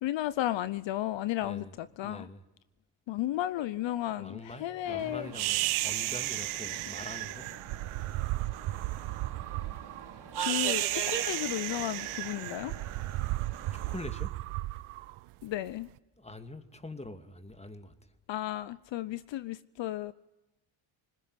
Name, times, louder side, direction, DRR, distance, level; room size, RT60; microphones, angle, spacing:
voice 1, 0.0-2.3 3.1-5.3 10.4-12.7 15.4-15.9 18.3-20.1, left 14 dB, 65° left, 0.8 m, -33 dB
voice 2, 2.0-2.4 4.0-7.5 13.7-14.3 16.2-17.9, left 2 dB, 15° left, 2.4 m, -44 dB
sound 1, 4.8-14.0, right 7 dB, 50° right, 4.7 m, -42 dB
sound 2, 5.3-15.7, right 18 dB, 75° right, 0.7 m, -34 dB
20.5 x 20.5 x 9.7 m
supercardioid pair, 75°, 49 cm